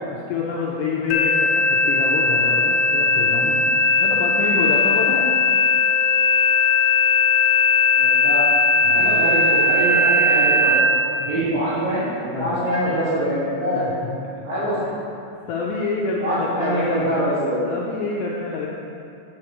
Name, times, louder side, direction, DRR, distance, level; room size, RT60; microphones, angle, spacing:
voice 1, 0.1-3.7 4.0-5.3 8.8-9.3 11.2-11.6 12.3-12.6 13.7-14.9 15.5-17.2 17.7-18.7, left 4 dB, 90° left, -4 dB, 2.4 m, -28 dB
sound 1, 1.1-10.8, left 3 dB, 70° left, 2.8 m, -18 dB
voice 2, 8.0-8.4 8.9-10.8 11.2-13.8 14.4-14.8 16.2-17.6, right 1 dB, 55° right, -12 dB, 3.3 m, -24 dB
9.8 x 8.7 x 3.1 m, 2.5 s
omnidirectional pair, 5.6 m